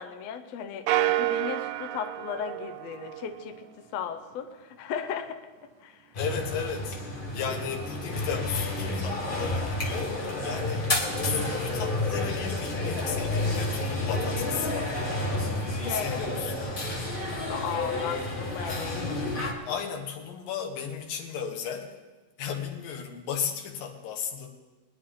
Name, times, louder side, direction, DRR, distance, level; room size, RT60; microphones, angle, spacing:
voice 1, 0.0-5.4 5.8-6.1 15.9-16.4 17.5-19.3, left 8 dB, 65° left, 6 dB, 1.7 m, -36 dB
sound 1, 0.9-3.6, right 17 dB, 90° right, 1.6 m, -29 dB
voice 2, 6.1-7.0 7.3-10.2 10.4-10.9 11.2-15.0 15.9-16.7 19.7-21.9 22.4-24.5, left 7 dB, 90° left, 3 dB, 3.2 m, -34 dB
sound 2, 6.1-19.5, left 2 dB, 35° left, 0.8 m, -30 dB
22.0 x 10.5 x 3.8 m, 1.3 s
omnidirectional pair, 3.9 m